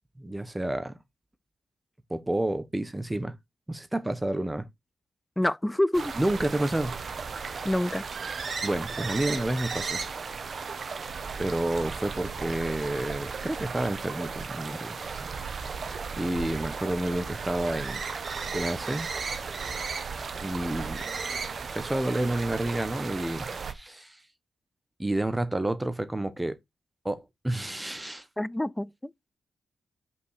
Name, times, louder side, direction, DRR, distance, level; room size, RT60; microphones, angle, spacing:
voice 1, 0.2-0.9 2.1-3.4 3.7-4.7 6.1-6.9 8.6-10.0 11.4-15.0 15.6-18.0 18.5-19.1 20.4-21.0 21.7-24.2 25.0-26.6 27.0-28.3, right 1 dB, 15° right, 1.1 m, -30 dB
voice 2, 5.4-6.2 7.6-8.0 28.4-28.9, left 1 dB, 10° left, 0.4 m, -26 dB
sound 1, 5.9-23.7, right 5 dB, 55° right, 1.2 m, -35 dB
5.5 x 5.3 x 6.6 m
cardioid pair, 80°, 0 cm